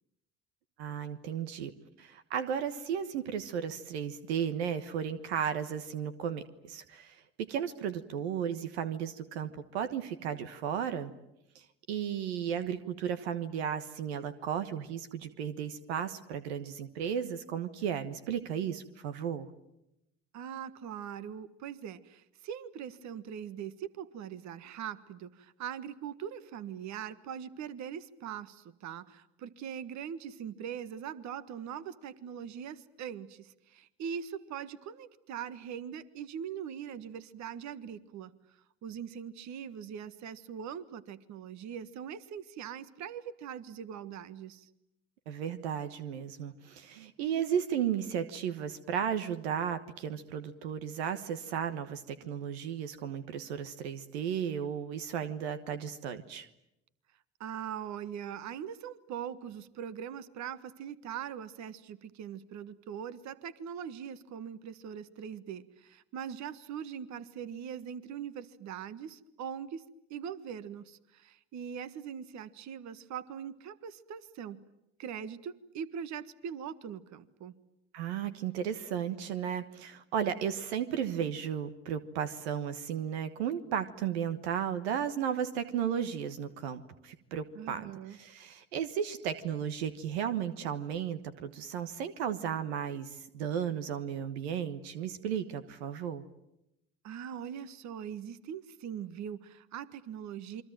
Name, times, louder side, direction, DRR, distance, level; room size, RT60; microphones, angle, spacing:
voice 1, 0.8-1.7 2.0-11.1 11.9-19.5 45.3-56.5 77.9-96.2, right 8 dB, 90° right, 10 dB, 1.4 m, -34 dB
voice 2, 20.3-38.3 38.8-44.7 57.4-69.8 70.1-74.6 75.0-77.5 87.5-88.2 97.0-100.6, right 8 dB, 60° right, 14 dB, 1.5 m, -41 dB
28.0 x 23.0 x 9.1 m, 0.86 s
hypercardioid pair, 70°, 31 cm